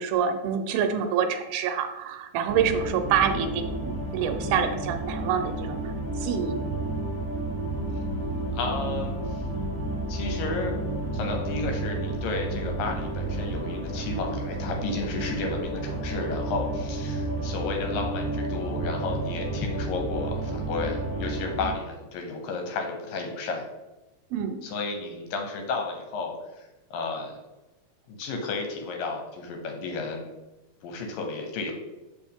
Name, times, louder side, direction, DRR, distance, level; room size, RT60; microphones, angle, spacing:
voice 1, 0.0-6.6 24.3-24.6, right 7 dB, 80° right, 7 dB, 2.3 m, -27 dB
sound 1, 2.5-21.7, right 2 dB, 25° left, 0.5 m, -31 dB
voice 2, 8.5-9.4 10.1-10.8 11.1-23.6 24.6-27.4 28.1-30.3 30.8-31.7, left 3 dB, 75° left, 3 dB, 2.3 m, -32 dB
6.7 x 5.2 x 3.5 m, 1.0 s
omnidirectional pair, 4.4 m